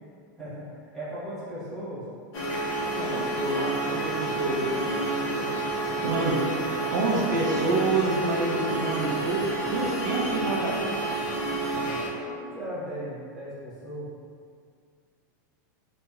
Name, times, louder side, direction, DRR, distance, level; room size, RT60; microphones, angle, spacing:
voice 1, 0.4-2.0 11.7-14.1, right 1 dB, ahead, -15 dB, 0.7 m, -38 dB
sound 1, 2.3-12.1, right 2 dB, 30° left, 0.4 m, -29 dB
voice 2, 2.9-5.6 6.0-6.5 6.9-10.9, right 2 dB, 70° right, -2 dB, 0.4 m, -28 dB
2.8 x 2.0 x 2.3 m, 2.2 s
supercardioid pair, 170°, 11 cm